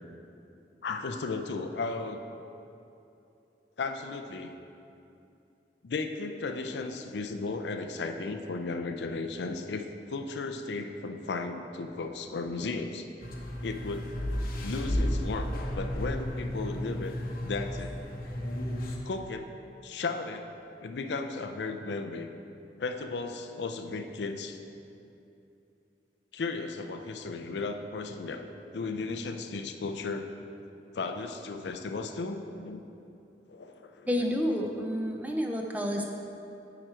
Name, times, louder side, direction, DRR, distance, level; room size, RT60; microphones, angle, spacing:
voice 1, 0.8-2.2 3.8-4.5 5.8-13.1 13.6-14.1 14.6-18.0 19.0-19.5 19.8-20.5 20.8-22.3 22.8-24.6 26.3-30.3 30.9-32.8 33.5-34.1, left 3 dB, 75° left, 7 dB, 0.5 m, -35 dB
sound 1, 13.2-19.0, equal, 55° left, 0.8 m, -33 dB
voice 2, 34.1-36.0, equal, 10° right, 1 dB, 0.5 m, -29 dB
9.1 x 4.9 x 4.4 m, 2.8 s
head